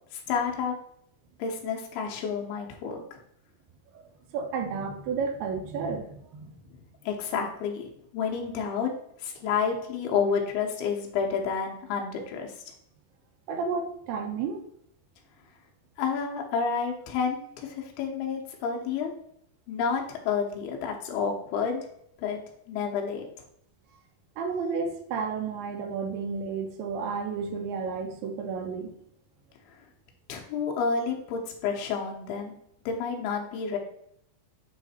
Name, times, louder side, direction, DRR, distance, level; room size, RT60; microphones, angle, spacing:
voice 1, 0.1-0.7 1.4-3.2 7.0-8.9 9.2-12.6 16.0-19.1 19.7-21.9 22.2-22.4 22.7-23.2 30.3-32.6 32.9-33.8, left 6 dB, 75° left, 1 dB, 2.9 m, -30 dB
voice 2, 4.3-6.5 13.5-14.7 24.4-29.0, right 5 dB, 80° right, 5 dB, 2.7 m, -32 dB
8.3 x 3.2 x 4.2 m, 0.72 s
omnidirectional pair, 4.7 m